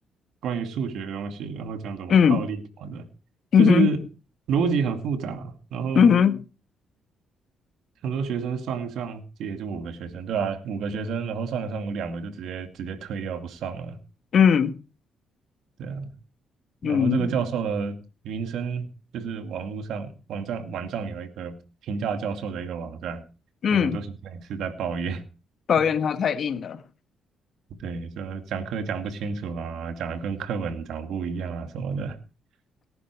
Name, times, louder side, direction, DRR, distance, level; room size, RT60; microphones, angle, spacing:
voice 1, 0.4-3.0 3.6-4.0 4.5-6.1 8.0-14.0 15.8-16.1 16.8-18.0 18.2-21.6 21.8-23.2 23.7-24.1 24.3-25.2 27.8-32.2, right 5 dB, 75° right, 2.4 m, -30 dB
voice 2, 2.1-2.4 3.5-3.9 5.9-6.4 14.3-14.8 16.8-17.4 23.6-24.0 25.7-26.8, left 7 dB, 55° left, 1.5 m, -19 dB
18.5 x 10.5 x 4.8 m
cardioid pair, 90°, 0 cm